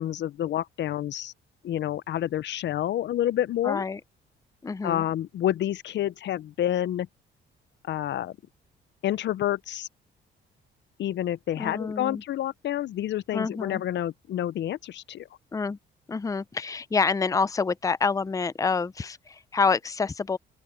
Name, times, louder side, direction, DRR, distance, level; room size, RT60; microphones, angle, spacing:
voice 1, 0.0-1.3 1.6-3.8 4.8-7.1 7.9-8.4 9.0-9.9 11.0-15.3, left 12 dB, 65° left, 0.6 m, -28 dB
voice 2, 3.6-4.0 4.6-5.0 11.6-12.2 13.3-13.8 15.5-15.8 16.1-20.4, left 4 dB, 15° left, 0.5 m, -27 dB
open air
cardioid pair, 90°, 20 cm